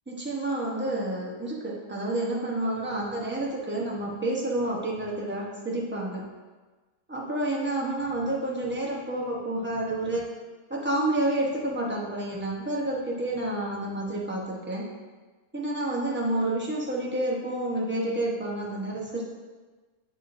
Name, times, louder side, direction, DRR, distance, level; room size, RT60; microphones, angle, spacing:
voice 1, 0.1-6.2 7.1-10.2 10.7-14.8 15.5-19.2, right 1 dB, 10° right, -4 dB, 0.9 m, -29 dB
9.9 x 3.7 x 2.6 m, 1.3 s
omnidirectional pair, 1.4 m